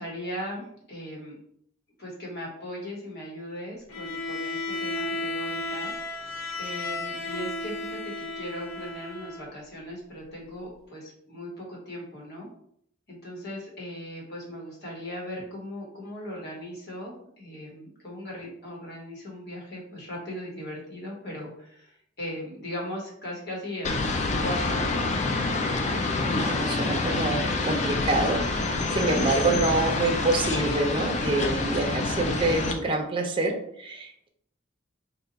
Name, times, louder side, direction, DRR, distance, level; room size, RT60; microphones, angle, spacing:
voice 1, 0.0-1.4 2.0-5.9 6.6-12.5 13.1-24.1 24.4-25.1 29.1-29.6, equal, 55° left, -3 dB, 1.2 m, -38 dB
Bowed string instrument, 3.9-9.5, left 2 dB, 80° left, 0.6 m, -33 dB
sound 1, 23.8-32.7, left 3 dB, 35° left, 0.4 m, -27 dB
voice 2, 26.3-34.3, right 2 dB, 25° right, 1 dB, 0.5 m, -27 dB
2.8 x 2.3 x 3.9 m, 0.68 s
head